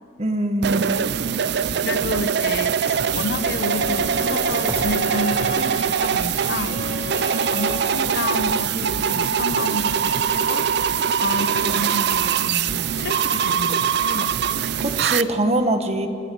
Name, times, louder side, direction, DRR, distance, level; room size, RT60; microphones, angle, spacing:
voice 1, 0.2-1.0 14.8-16.1, right 1 dB, 35° right, 7 dB, 1.3 m, -22 dB
sound 1, 0.6-15.2, right 7 dB, 60° right, 0.5 m, -22 dB
voice 2, 1.8-6.8 7.5-10.7 11.2-14.3, left 2 dB, 60° left, 11 dB, 0.9 m, -30 dB
Bowed string instrument, 2.9-8.1, left 5 dB, 30° left, 4.7 m, -35 dB
sound 2, 3.8-7.6 8.0-10.2, right 1 dB, 15° right, 1.0 m, -39 dB
25.5 x 11.5 x 9.7 m, 2.6 s
head